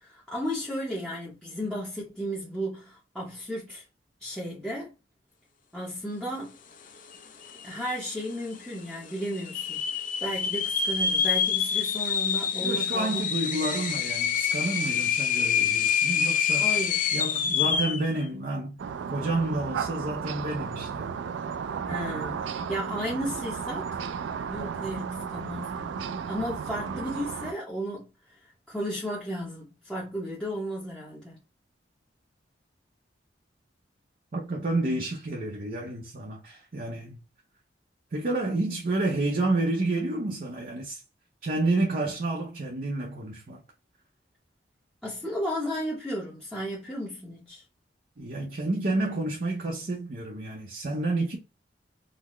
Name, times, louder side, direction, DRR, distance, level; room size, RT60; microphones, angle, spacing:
voice 1, 0.0-3.8 4.2-4.9 5.7-6.5 7.6-9.8 10.2-13.3 13.8-13.9 16.6-17.1 17.6-17.9 21.9-24.0 24.5-25.9 26.3-31.4 45.0-47.6, equal, 5° left, 0.7 m, -34 dB
sound 1, 7.1-7.2 7.4-8.0 8.5-8.6 9.3-18.1, left 7 dB, 50° left, 0.5 m, -26 dB
voice 2, 12.6-16.7 17.1-18.8 19.1-21.2 34.3-37.2 38.1-41.0 41.4-43.6 48.2-51.4, right 2 dB, 50° right, 0.7 m, -30 dB
sound 2, 18.8-27.5, right 6 dB, 85° right, 0.3 m, -34 dB
3.9 x 2.1 x 3.0 m
head